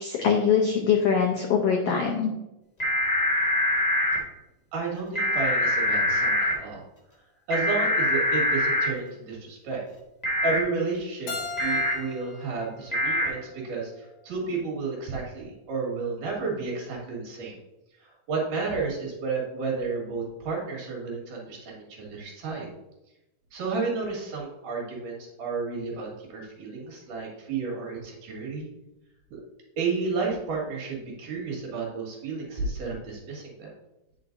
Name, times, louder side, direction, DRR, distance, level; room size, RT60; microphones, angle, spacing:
voice 1, 0.0-2.3, left 6 dB, 85° left, 1 dB, 1.3 m, -23 dB
sound 1, 2.8-4.2 5.1-6.5 7.5-8.9 10.2-10.6 11.6-11.9 12.9-13.3, left 1 dB, 25° left, 0.8 m, -24 dB
voice 2, 4.7-6.8 7.5-9.8 10.4-11.3 11.6-17.6 18.0-22.7 23.5-28.7 29.3-29.4 29.8-33.7, right 4 dB, 70° right, -3 dB, 3.3 m, -32 dB
Keyboard (musical), 11.3-14.1, left 3 dB, 55° left, 1.6 m, -39 dB
9.0 x 6.0 x 2.6 m, 0.94 s
omnidirectional pair, 3.8 m